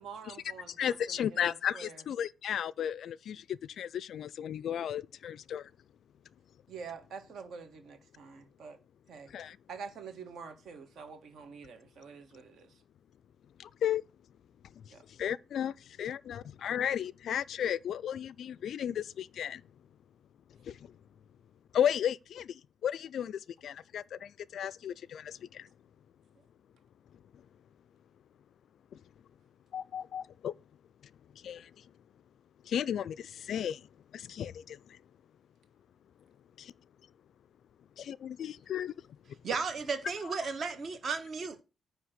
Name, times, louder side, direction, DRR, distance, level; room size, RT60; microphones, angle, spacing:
voice 1, 0.0-2.0 6.7-8.8 9.1-9.3 9.7-12.8 14.9-15.0 26.3-26.4, right 5 dB, 60° right, 1.6 m, -47 dB
voice 2, 0.8-5.7 9.3-9.6 13.6-14.0 14.9-19.6 20.6-20.9 21.7-22.5 22.8-25.7 28.9-29.0 29.7-30.5 31.4-31.8 32.7-33.9 34.1-35.0 38.0-38.9, left 9 dB, 55° left, 0.3 m, -34 dB
voice 3, 39.4-41.6, right 5 dB, 40° right, 1.2 m, -34 dB
9.6 x 3.3 x 6.4 m
cardioid pair, 180°, 0 cm